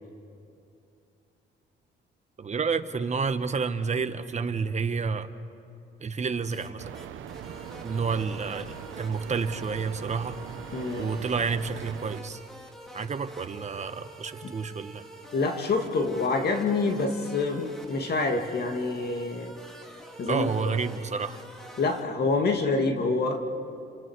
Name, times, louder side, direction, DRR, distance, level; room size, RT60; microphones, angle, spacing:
voice 1, 2.4-5.3 6.0-6.8 7.8-8.7 9.0-10.4 11.0-12.4 12.9-15.0 20.3-21.4, right 5 dB, 35° right, 9 dB, 1.2 m, -29 dB
sound 1, 6.5-6.7 6.9-22.0, right 1 dB, ahead, 3.5 m, -46 dB
sound 2, 6.8-12.2, right 10 dB, 80° right, 1.0 m, -41 dB
voice 2, 10.7-11.1 14.4-14.5 15.3-19.6 20.2-20.8 21.8-23.4, left 3 dB, 55° left, 4 dB, 2.3 m, -27 dB
29.5 x 28.0 x 4.8 m, 2.7 s
cardioid pair, 90°, 20 cm